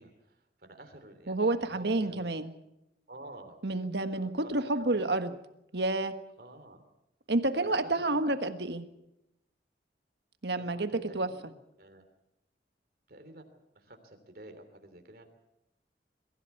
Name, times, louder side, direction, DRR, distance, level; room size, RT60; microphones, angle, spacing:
voice 1, 0.0-2.2 3.1-3.9 4.1-5.0 6.4-6.8 8.2-8.5 10.6-11.5 11.8-12.0 13.1-15.3, right 1 dB, 55° right, 6 dB, 3.1 m, -51 dB
voice 2, 1.3-2.5 3.6-5.3 5.7-6.2 7.3-8.9 10.4-11.3, right 2 dB, 75° right, 9 dB, 1.5 m, -29 dB
22.5 x 15.0 x 8.2 m, 0.87 s
head